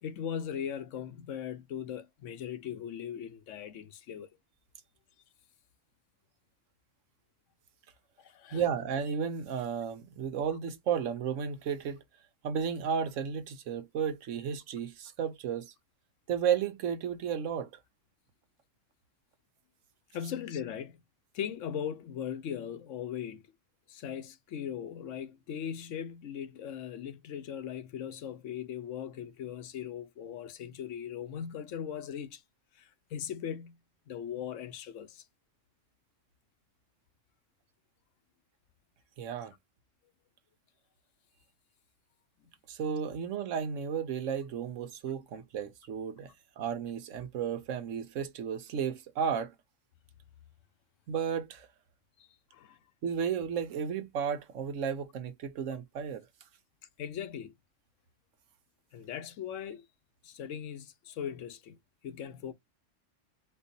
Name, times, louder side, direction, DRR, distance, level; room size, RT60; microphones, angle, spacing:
voice 1, 0.0-4.3 8.2-8.6 20.1-21.0 21.3-23.4 23.9-32.4 32.8-33.8 34.1-35.2 52.2-52.8 57.0-57.5 58.9-59.8 60.2-61.8 62.0-62.5, left 9 dB, 80° left, 1.0 m, -39 dB
voice 2, 8.5-12.0 12.4-15.7 16.3-17.7 39.2-39.5 42.7-46.3 46.6-49.5 51.1-51.7 53.0-56.2, right 7 dB, 75° right, 1.1 m, -33 dB
4.5 x 2.2 x 2.6 m
omnidirectional pair, 1.3 m